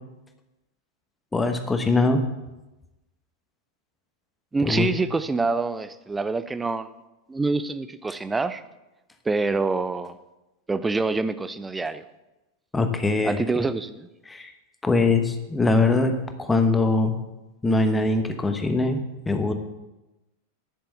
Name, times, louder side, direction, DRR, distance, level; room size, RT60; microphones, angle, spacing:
voice 1, 1.3-2.2 4.6-4.9 12.7-13.4 14.3-14.5 14.8-16.1 16.4-17.2 17.6-19.0 19.3-19.5, left 3 dB, 10° left, 6 dB, 1.1 m, -22 dB
voice 2, 4.5-6.9 7.3-8.6 9.3-10.2 10.7-12.0 13.2-14.1, right 3 dB, 10° right, 14 dB, 0.6 m, -26 dB
11.0 x 6.8 x 6.9 m, 1.0 s
figure-of-eight pair, 90°, 0 cm